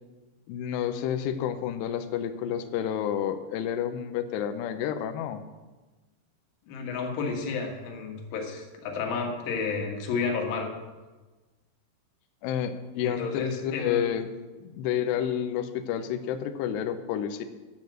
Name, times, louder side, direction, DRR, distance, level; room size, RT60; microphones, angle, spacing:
voice 1, 0.5-5.4 12.4-14.3 14.6-17.4, left 9 dB, 90° left, 8 dB, 2.4 m, -30 dB
voice 2, 6.7-10.7 13.0-14.0, left 5 dB, 70° left, 1 dB, 4.0 m, -31 dB
11.5 x 7.3 x 7.9 m, 1.2 s
omnidirectional pair, 6.0 m